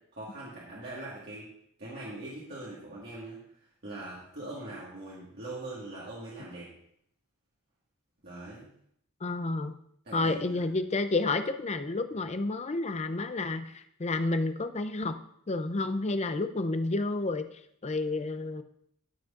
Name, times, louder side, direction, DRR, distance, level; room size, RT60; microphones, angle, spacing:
voice 1, 0.1-1.5 1.8-6.7 8.2-8.7 10.0-10.6, right 2 dB, 50° right, -7 dB, 1.8 m, -42 dB
voice 2, 9.2-9.7 10.1-15.2 15.5-17.5 17.8-18.6, left 2 dB, 30° left, 9 dB, 0.5 m, -30 dB
13.5 x 6.1 x 2.5 m, 0.69 s
head